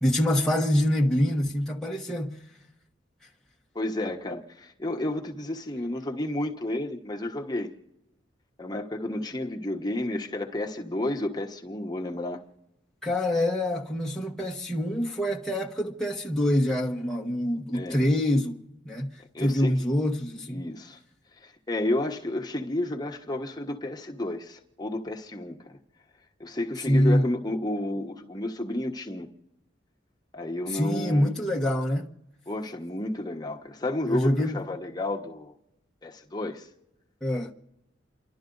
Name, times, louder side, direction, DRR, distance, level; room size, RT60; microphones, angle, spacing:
voice 1, 0.0-2.4 13.0-20.6 26.9-27.2 30.7-32.1 34.1-34.6 37.2-37.5, left 1 dB, 5° left, 1.2 m, -25 dB
voice 2, 3.7-7.7 8.6-12.4 17.7-18.0 19.3-19.7 20.5-21.0 21.4-25.8 26.4-29.3 30.3-31.3 32.5-35.5 36.0-36.7, left 1 dB, 20° left, 1.3 m, -31 dB
29.0 x 12.5 x 3.9 m
head